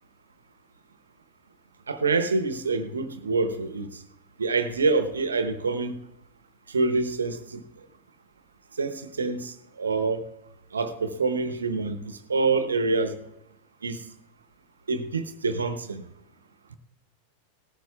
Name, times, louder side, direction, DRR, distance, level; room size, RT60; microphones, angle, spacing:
voice 1, 1.9-3.9 4.4-6.0 6.7-7.6 8.8-10.3 10.7-13.1 13.8-14.0 14.9-16.0, right 3 dB, 70° right, 9 dB, 0.9 m, -26 dB
18.0 x 14.5 x 2.3 m, 0.95 s
figure-of-eight pair, 90°, 0 cm